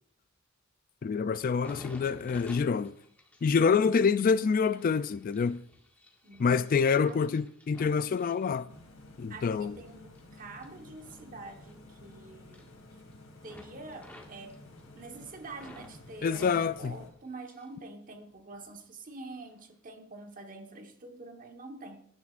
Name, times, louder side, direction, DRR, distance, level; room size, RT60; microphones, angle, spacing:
voice 1, 1.0-3.0 3.4-5.6 6.4-8.7 9.2-9.8 16.2-16.9, left 5 dB, 45° left, 0.3 m, -26 dB
sound 1, 1.4-9.1 9.5-12.1 12.4-13.1 13.4-15.9 16.2-17.8 18.1-18.8 19.4-19.6, left 1 dB, 10° left, 1.7 m, -54 dB
voice 2, 6.2-6.7 7.0-7.2 9.3-12.7 13.4-14.6 15.0-22.1, right 3 dB, 40° right, 1.3 m, -46 dB
sound 2, 8.7-17.1, left 1 dB, 70° left, 2.6 m, -52 dB
19.5 x 10.5 x 2.5 m
head